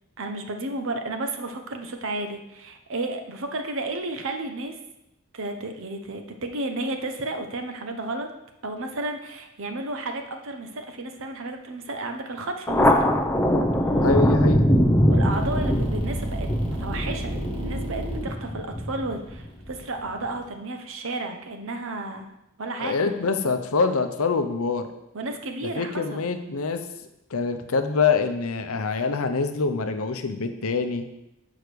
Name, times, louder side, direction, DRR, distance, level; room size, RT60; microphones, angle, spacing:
voice 1, 0.2-4.8 5.3-8.3 8.6-13.0 15.1-22.3 22.6-23.0 25.1-26.2, right 2 dB, 60° right, 5 dB, 0.9 m, -32 dB
Thunder, 12.7-19.7, equal, 10° left, 0.6 m, -22 dB
voice 2, 14.0-14.6 22.8-24.9 25.8-26.8 27.3-31.0, left 4 dB, 65° left, 8 dB, 0.7 m, -25 dB
sound 1, 15.3-20.4, equal, 25° right, 1.4 m, -33 dB
6.3 x 4.8 x 6.8 m, 0.88 s
head